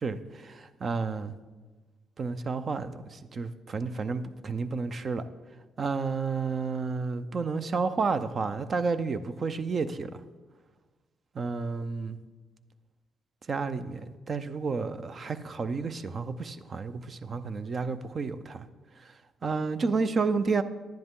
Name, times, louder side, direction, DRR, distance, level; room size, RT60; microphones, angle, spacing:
voice 1, 0.0-1.3 2.2-5.2 5.8-10.2 11.3-12.2 13.5-18.7 19.4-20.6, right 4 dB, 45° right, 12 dB, 0.6 m, -31 dB
10.5 x 10.0 x 3.7 m, 1.3 s
cardioid pair, 90°, 0 cm